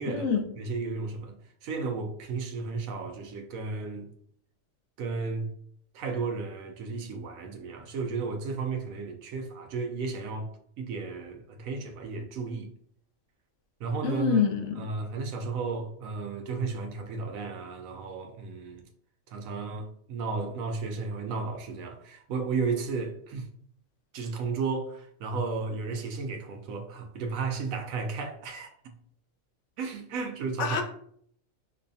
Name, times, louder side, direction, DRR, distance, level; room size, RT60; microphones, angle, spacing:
voice 1, 0.1-0.4 14.0-14.9 30.6-30.8, left 6 dB, 65° left, 0.9 m, -26 dB
voice 2, 0.6-4.1 5.0-5.5 5.9-10.5 10.8-12.7 13.8-14.4 14.8-18.8 19.3-23.5 24.1-28.9 29.8-30.8, right 4 dB, 80° right, 1.0 m, -33 dB
5.4 x 2.2 x 2.6 m
omnidirectional pair, 1.4 m